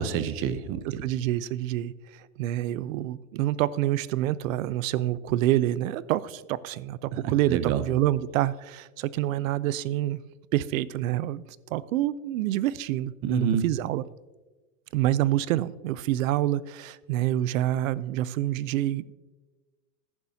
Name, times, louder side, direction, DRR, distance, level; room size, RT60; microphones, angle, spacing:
voice 1, 0.0-1.0 7.2-7.8 13.2-13.6, right 8 dB, 35° right, 13 dB, 0.7 m, -27 dB
voice 2, 1.0-10.2 10.5-11.4 11.7-14.0 14.9-19.1, right 14 dB, 75° right, 19 dB, 0.6 m, -27 dB
14.0 x 10.5 x 2.8 m, 1.2 s
supercardioid pair, 140°, 40 cm